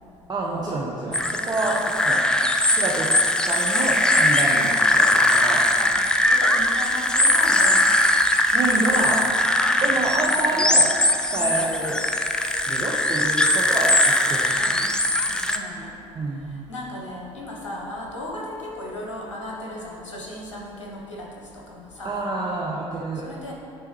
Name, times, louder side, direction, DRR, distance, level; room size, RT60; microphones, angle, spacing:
voice 1, 0.3-2.2 2.7-5.6 8.5-9.2 9.8-10.9 11.2-12.0 12.7-14.5 16.1-16.5 22.0-23.2, right 2 dB, 25° right, -5 dB, 0.7 m, -28 dB
sound 1, 1.1-15.6, left 1 dB, 5° left, 0.3 m, -20 dB
voice 2, 6.3-7.9 8.9-9.1 9.8-10.6 11.4-11.6 14.5-14.8 15.2-15.9 16.4-22.1 23.1-23.5, left 1 dB, 75° left, -2 dB, 0.9 m, -36 dB
9.1 x 3.4 x 3.1 m, 2.6 s
figure-of-eight pair, 60°, 16 cm